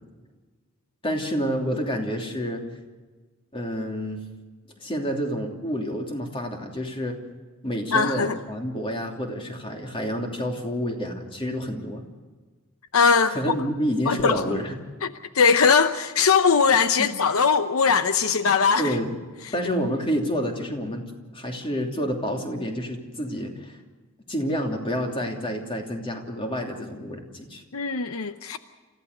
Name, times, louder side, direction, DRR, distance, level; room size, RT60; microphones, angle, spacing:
voice 1, 1.0-2.6 3.5-4.2 4.8-7.2 7.6-12.0 13.3-14.8 17.0-17.1 18.8-19.1 19.5-21.0 21.3-23.8 24.3-27.6, equal, 25° left, 3.0 m, -28 dB
voice 2, 7.9-8.4 12.9-13.5 14.1-14.6 15.0-19.0 27.7-28.6, left 5 dB, 75° left, 0.8 m, -20 dB
28.5 x 15.0 x 6.7 m
head